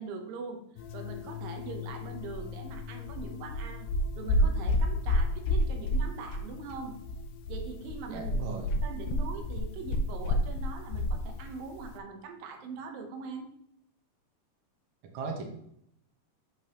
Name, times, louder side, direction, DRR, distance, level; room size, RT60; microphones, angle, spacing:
voice 1, 0.0-3.9 4.2-6.9 7.5-8.3 8.8-13.5, right 4 dB, 85° right, 4 dB, 2.7 m, -42 dB
sound 1, 0.8-12.0, left 1 dB, 80° left, 2.3 m, -31 dB
voice 2, 8.1-8.7 15.0-15.4, right 4 dB, 65° right, 2 dB, 1.3 m, -37 dB
8.1 x 5.2 x 2.9 m, 0.73 s
omnidirectional pair, 3.9 m